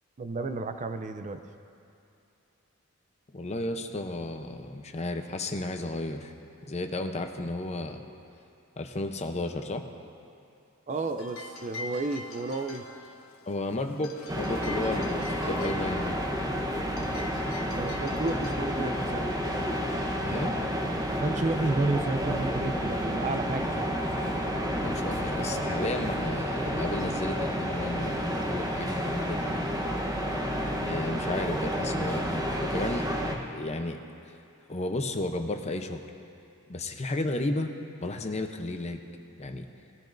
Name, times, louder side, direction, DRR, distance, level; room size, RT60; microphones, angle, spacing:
voice 1, 0.2-1.4 10.9-12.9 17.7-19.3 21.2-23.9, right 2 dB, 35° right, 8 dB, 0.5 m, -31 dB
voice 2, 3.3-6.3 6.6-8.0 8.8-9.8 13.5-16.2 20.2-20.6 24.6-29.5 30.8-33.1 33.5-34.0 34.7-36.0 36.7-37.7 38.0-39.0 39.4-39.7, left 2 dB, 30° left, 5 dB, 0.7 m, -33 dB
sound 1, 10.9-21.3, left 2 dB, 70° left, 1.3 m, -45 dB
sound 2, 14.3-33.4, equal, 15° right, 1.0 m, -30 dB
20.0 x 13.5 x 2.6 m, 2.6 s
head